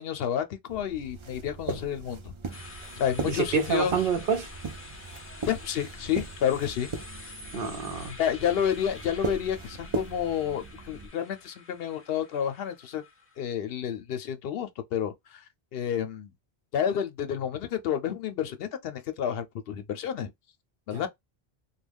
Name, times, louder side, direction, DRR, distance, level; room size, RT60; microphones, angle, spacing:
voice 1, 0.0-4.0 5.5-6.9 8.2-13.0 13.4-15.4 15.7-16.3 16.7-20.3 20.9-21.1, left 9 dB, 70° left, 0.7 m, -30 dB
sound 1, 0.7-11.1, right 3 dB, 45° right, 0.4 m, -38 dB
sound 2, 2.5-13.5, left 2 dB, 15° left, 0.5 m, -48 dB
voice 2, 3.2-4.5 7.5-8.2 20.9-21.1, right 6 dB, 65° right, 0.8 m, -27 dB
2.2 x 2.2 x 3.3 m
omnidirectional pair, 1.0 m